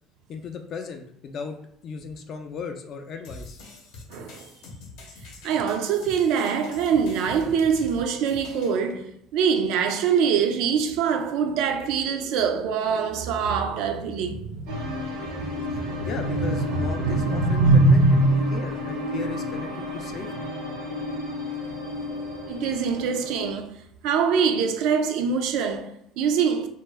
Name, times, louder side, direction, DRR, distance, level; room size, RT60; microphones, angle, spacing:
voice 1, 0.3-1.6 1.8-3.6 15.7-18.0 18.5-20.5, left 5 dB, 50° left, 0.3 m, -36 dB
sound 1, 3.2-8.8, left 2 dB, 75° left, 0.7 m, -44 dB
voice 2, 4.1-4.5 5.4-18.6 22.5-23.8 24.0-26.7, right 5 dB, 70° right, 0.3 m, -23 dB
sound 2, 14.7-23.5, left 2 dB, 85° right, 0.7 m, -33 dB
2.2 x 2.1 x 3.2 m
cardioid pair, 115°, 0 cm